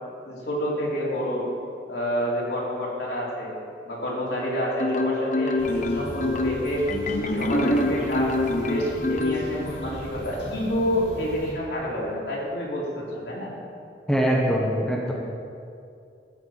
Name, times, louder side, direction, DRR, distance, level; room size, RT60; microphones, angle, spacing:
voice 1, 0.2-1.5 1.9-3.5 3.8-6.8 7.2-13.5, equal, 65° left, -5 dB, 3.5 m, -28 dB
Marimba xylophone, 4.8-9.9, left 2 dB, 40° left, 0.8 m, -26 dB
sound 1, 5.6-11.5, equal, 85° left, 2.7 m, -38 dB
voice 2, 14.1-15.1, equal, 5° left, -3 dB, 1.2 m, -22 dB
13.0 x 5.8 x 8.7 m, 2.5 s
head